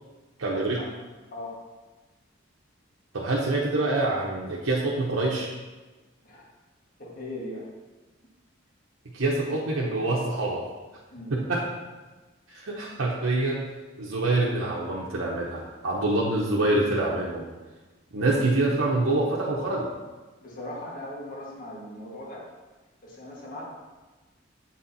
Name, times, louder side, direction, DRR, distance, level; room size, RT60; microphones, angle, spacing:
voice 1, 0.4-0.8 3.1-5.5 9.1-10.7 11.3-11.6 12.5-13.7 14.0-17.5 18.1-19.9, right 2 dB, 85° right, -4 dB, 0.9 m, -26 dB
voice 2, 7.0-7.7 11.1-11.3 20.4-22.4 23.0-23.6, left 1 dB, 45° left, -4 dB, 1.6 m, -39 dB
8.0 x 4.3 x 4.1 m, 1.2 s
head